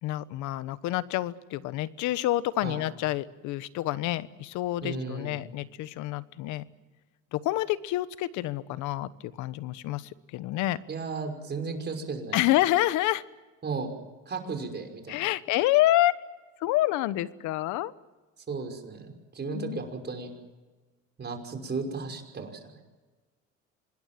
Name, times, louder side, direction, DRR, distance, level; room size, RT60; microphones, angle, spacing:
voice 1, 0.0-6.7 7.3-10.8 12.3-13.2 15.1-16.1 16.6-17.9 19.5-19.8, left 15 dB, 80° left, 15 dB, 1.2 m, -28 dB
voice 2, 4.8-5.4 10.9-12.4 13.6-13.9 14.3-15.2 18.5-20.3 21.2-22.8, right 4 dB, 35° right, 4 dB, 5.6 m, -35 dB
26.0 x 20.5 x 7.7 m, 1.2 s
cardioid pair, 95°, 29 cm